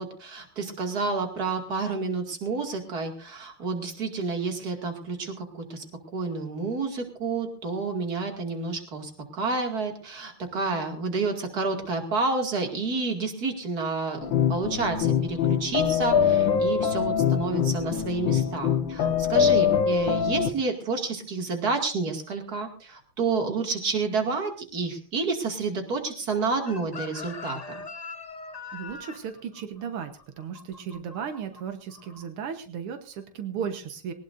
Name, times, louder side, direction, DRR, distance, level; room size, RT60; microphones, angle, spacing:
voice 1, 0.0-5.8 6.1-27.8, right 4 dB, 45° right, 3 dB, 2.9 m, -29 dB
sound 1, 14.2-20.5, left 8 dB, 65° left, 1.8 m, -23 dB
Chicken rooster, 26.7-31.6 31.9-32.2, left 4 dB, 35° left, 0.6 m, -41 dB
voice 2, 28.7-34.1, right 7 dB, 85° right, 7 dB, 2.1 m, -35 dB
20.5 x 19.0 x 2.6 m, 0.40 s
omnidirectional pair, 2.4 m